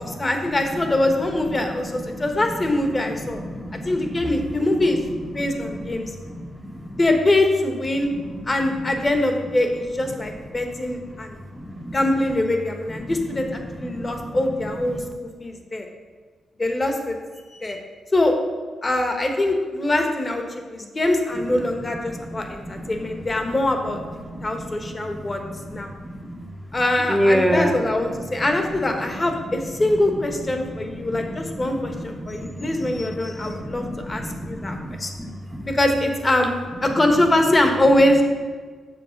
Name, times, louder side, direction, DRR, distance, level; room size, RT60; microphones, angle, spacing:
voice 1, 0.0-3.4 3.8-5.0 5.3-6.1 7.0-8.1 8.5-11.4 11.9-15.9 16.6-17.2 17.5-17.8 18.1-18.3 18.8-24.0 24.4-25.4 25.7-25.9 26.7-35.1 35.7-36.5 36.8-38.2, left 1 dB, 25° left, 4 dB, 1.3 m, -23 dB
voice 2, 3.5-4.2 5.7-7.0 8.3-8.4 11.5-12.0 13.9-14.3 22.3-22.5 24.2-24.4 25.1-25.3 26.0-26.5 27.1-27.8 31.0-33.0 33.4-35.7, equal, ahead, 5 dB, 0.9 m, -28 dB
7.6 x 6.6 x 5.2 m, 1.5 s
cardioid pair, 95°, 0 cm